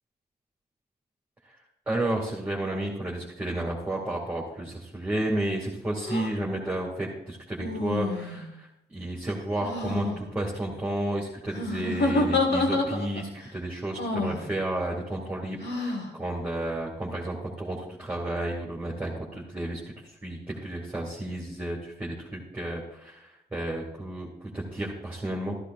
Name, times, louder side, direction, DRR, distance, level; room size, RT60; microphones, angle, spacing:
voice 1, 1.9-19.8 20.2-25.5, right 1 dB, 10° right, -5 dB, 2.2 m, -32 dB
sound 1, 6.0-6.3 7.6-8.5 9.6-10.2 11.5-13.3 14.0-14.4 15.6-16.1, left 2 dB, 90° left, 1.6 m, -28 dB
14.0 x 13.5 x 2.5 m, 0.84 s
wide cardioid pair, 145°, 17 cm